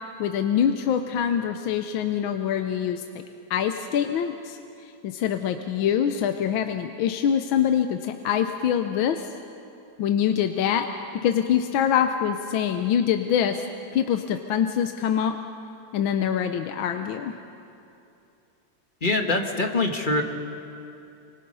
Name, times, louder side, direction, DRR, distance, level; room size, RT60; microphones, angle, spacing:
voice 1, 0.2-3.2 3.5-4.6 5.0-9.3 10.0-10.9 11.2-13.6 13.9-15.3 15.9-17.3, left 9 dB, 70° left, 7 dB, 1.5 m, -24 dB
voice 2, 19.0-20.2, left 2 dB, 25° left, 3 dB, 1.4 m, -24 dB
26.0 x 24.5 x 5.5 m, 2.7 s
omnidirectional pair, 2.4 m